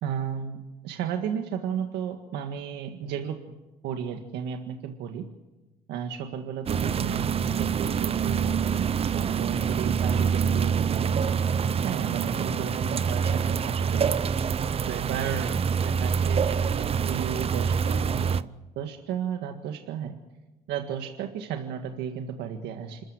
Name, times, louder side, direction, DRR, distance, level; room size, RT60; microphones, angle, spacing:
voice 1, 0.0-0.6 0.8-3.4 3.8-5.3 5.9-11.2 11.8-14.1 14.9-18.4 18.8-20.2 20.7-23.0, right 8 dB, 85° right, 5 dB, 1.8 m, -34 dB
sound 1, 6.7-18.4, right 7 dB, 35° right, 0.7 m, -26 dB
27.0 x 14.0 x 9.6 m, 1.1 s
cardioid pair, 110°, 17 cm